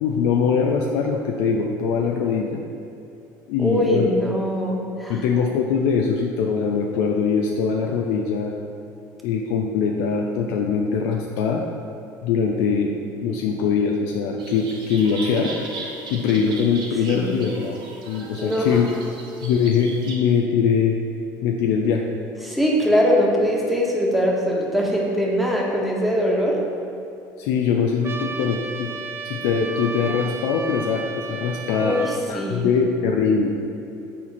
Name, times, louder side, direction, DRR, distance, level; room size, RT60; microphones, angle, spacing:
voice 1, 0.0-2.6 3.5-4.1 5.1-8.5 9.2-11.6 12.2-12.9 13.2-15.5 16.1-18.9 19.4-21.0 21.4-22.0 27.4-28.9 29.2-32.0 32.3-33.5, left 6 dB, 70° left, 1 dB, 0.5 m, -22 dB
voice 2, 3.6-5.2 17.1-17.3 18.4-18.7 22.4-26.6 31.8-32.7, equal, ahead, -3 dB, 1.4 m, -22 dB
sound 1, 14.4-20.2, right 3 dB, 50° right, 1.2 m, -37 dB
Trumpet, 28.0-32.2, right 4 dB, 25° right, 0.5 m, -33 dB
7.3 x 4.1 x 4.3 m, 2.8 s
hypercardioid pair, 70°, 10 cm